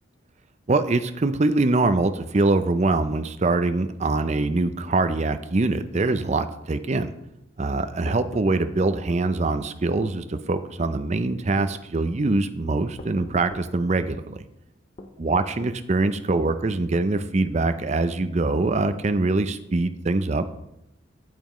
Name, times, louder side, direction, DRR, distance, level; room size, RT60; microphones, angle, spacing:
voice 1, 0.7-7.1 7.6-14.4 15.2-20.5, right 2 dB, 35° right, 10 dB, 0.5 m, -23 dB
sound 1, 8.1-9.0 10.0-10.2 10.8-11.0 11.6-11.8 13.0-13.7 15.0-15.8, left 2 dB, 30° left, 0.6 m, -41 dB
9.3 x 8.7 x 3.1 m, 0.85 s
head